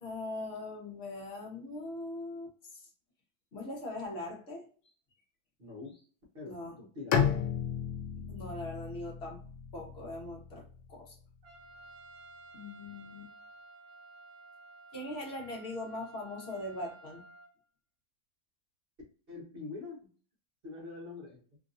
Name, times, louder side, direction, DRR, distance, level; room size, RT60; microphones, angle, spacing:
voice 1, 0.0-2.9 3.5-4.7 6.4-6.8 8.3-9.4 9.7-11.1 12.5-13.3 14.9-17.2, left 2 dB, 45° left, 0 dB, 1.1 m, -41 dB
voice 2, 5.6-5.9 6.3-7.3 19.3-20.1 20.6-21.4, left 3 dB, 45° right, -3 dB, 0.9 m, -44 dB
Bowed string instrument, 7.1-11.0, left 7 dB, 85° left, 1.2 m, -33 dB
Trumpet, 11.4-17.5, right 2 dB, 70° right, 1.1 m, -53 dB
3.1 x 2.6 x 2.4 m, 0.42 s
omnidirectional pair, 1.8 m